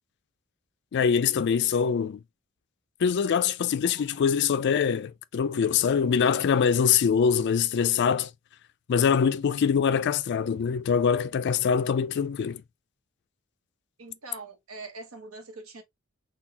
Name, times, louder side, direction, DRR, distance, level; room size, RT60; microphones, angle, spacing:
voice 1, 0.9-2.2 3.0-8.3 8.9-12.6, left 7 dB, 50° left, 0.3 m, -24 dB
voice 2, 14.0-15.8, right 3 dB, 75° right, 1.0 m, -43 dB
3.9 x 2.3 x 2.8 m
head